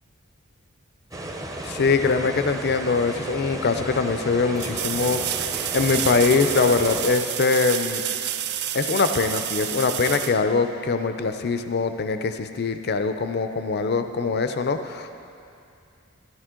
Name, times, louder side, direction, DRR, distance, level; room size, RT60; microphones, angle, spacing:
sound 1, 1.1-7.1, right 1 dB, 15° right, 0.7 m, -34 dB
voice 1, 1.6-8.0 8.7-15.1, left 4 dB, 50° left, 8 dB, 0.5 m, -23 dB
sound 2, 4.6-11.2 14.0-14.1, right 11 dB, 50° right, 0.4 m, -29 dB
12.5 x 11.0 x 3.8 m, 2.5 s
head